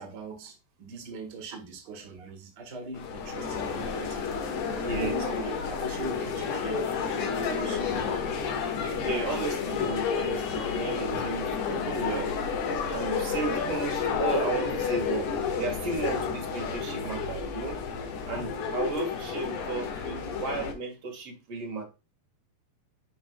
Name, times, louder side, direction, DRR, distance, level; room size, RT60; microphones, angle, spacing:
voice 1, 0.0-4.5 4.9-7.9, right 3 dB, 75° right, 0.9 m, -41 dB
sound 1, 2.9-20.7, left 6 dB, 75° left, 3.8 m, -31 dB
voice 2, 4.8-5.2 9.0-12.3 12.9-15.3 15.6-17.8 18.3-21.8, right 3 dB, 45° right, 2.3 m, -33 dB
11.0 x 4.7 x 2.3 m
omnidirectional pair, 4.7 m